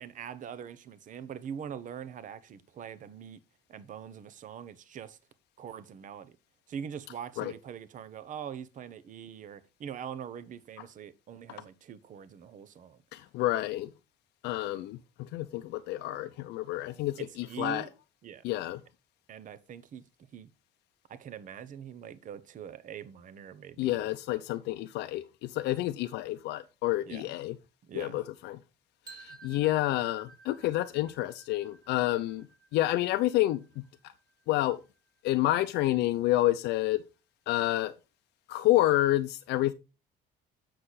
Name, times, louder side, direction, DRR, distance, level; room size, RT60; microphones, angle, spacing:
voice 1, 0.0-3.4 3.7-5.2 5.6-6.3 6.7-13.0 17.2-17.9 18.2-18.4 19.3-20.0 20.3-20.5 21.1-24.1 27.1-27.2 27.9-28.2, right 8 dB, 50° right, 0.9 m, -43 dB
voice 2, 13.1-13.9 14.4-17.9 18.4-18.8 23.8-27.6 27.9-28.6 29.1-32.5 32.7-33.8 34.5-34.8 35.2-37.0 37.5-37.9 38.5-39.7, left 16 dB, 85° left, 0.6 m, -29 dB
sound 1, 29.1-35.0, right 4 dB, 25° right, 1.7 m, -55 dB
7.7 x 6.5 x 4.1 m
cardioid pair, 110°, 17 cm